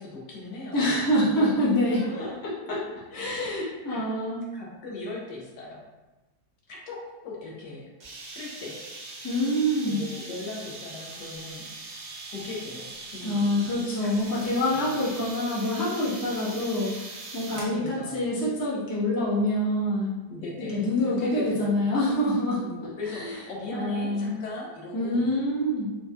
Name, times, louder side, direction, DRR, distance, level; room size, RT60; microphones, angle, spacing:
voice 1, 0.0-2.4 3.1-4.0 4.5-5.8 6.7-7.0 7.2-7.8 8.3-8.7 9.9-11.6 12.3-13.5 14.0-14.3 14.7-14.9 17.5-18.3 20.3-22.0 22.5-25.3, left 2 dB, 85° left, -4 dB, 1.5 m, -39 dB
voice 2, 0.7-2.0 2.7-2.8 3.1-4.4 9.2-10.0 13.2-20.1 20.6-22.6 23.1-23.4 23.7-24.4 24.9-25.9, left 1 dB, 20° left, -8 dB, 0.6 m, -26 dB
sound 1, 8.0-17.8, right 2 dB, 70° right, 1.3 m, -41 dB
4.5 x 2.7 x 2.3 m, 1.1 s
omnidirectional pair, 1.8 m